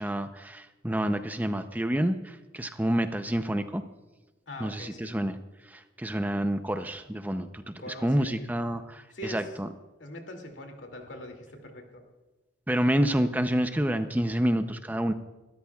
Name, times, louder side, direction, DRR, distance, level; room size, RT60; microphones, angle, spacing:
voice 1, 0.0-3.8 4.6-5.4 5.7-9.7 12.7-15.1, right 1 dB, 10° right, 8 dB, 0.5 m, -28 dB
voice 2, 4.5-5.1 7.8-8.6 9.1-9.5 10.0-12.0, left 1 dB, 85° left, 3 dB, 2.5 m, -42 dB
24.0 x 13.0 x 2.4 m, 1.2 s
head